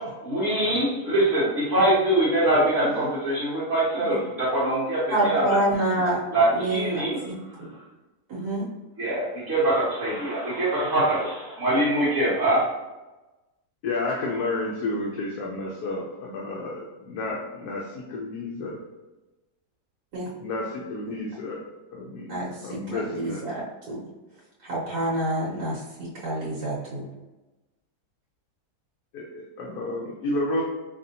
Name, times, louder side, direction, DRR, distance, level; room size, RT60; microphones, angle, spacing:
voice 1, 0.2-5.6 6.3-7.2 7.5-7.8 9.0-12.6, right 1 dB, 50° right, -10 dB, 1.5 m, -23 dB
voice 2, 5.1-6.2 6.5-7.7 8.3-8.7 20.1-20.3 21.0-21.1 22.3-24.0 24.6-27.1, right 1 dB, 75° right, -8 dB, 1.6 m, -28 dB
voice 3, 13.8-18.8 20.4-22.3 22.6-23.4 29.1-30.6, left 2 dB, 70° left, -2 dB, 1.1 m, -31 dB
4.2 x 3.4 x 2.7 m, 1.1 s
omnidirectional pair, 1.8 m